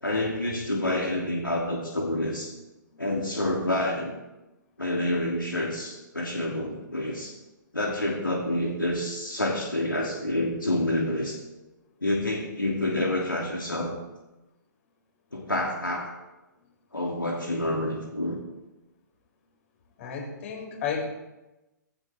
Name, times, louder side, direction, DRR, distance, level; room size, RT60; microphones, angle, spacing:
voice 1, 0.0-2.5 3.0-4.2 4.8-7.4 7.7-11.4 12.0-13.9 15.3-16.1 16.9-18.4, left 1 dB, 85° left, -1 dB, 2.8 m, -28 dB
voice 2, 20.0-21.0, left 7 dB, 45° left, -1 dB, 6.1 m, -32 dB
18.5 x 17.0 x 3.6 m, 1.0 s
figure-of-eight pair, 125°, 11 cm